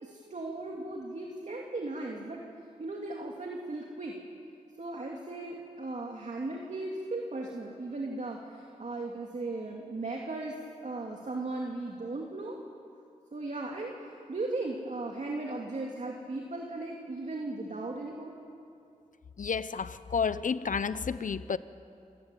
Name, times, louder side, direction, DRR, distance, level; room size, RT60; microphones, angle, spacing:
voice 1, 0.0-2.4 2.8-4.2 4.8-10.6 10.8-12.6 13.3-14.0 14.3-18.3, right 2 dB, 55° right, 0 dB, 2.6 m, -37 dB
voice 2, 19.4-21.6, left 6 dB, 65° left, 15 dB, 0.8 m, -31 dB
28.0 x 17.0 x 9.1 m, 2.5 s
wide cardioid pair, 75°, 14 cm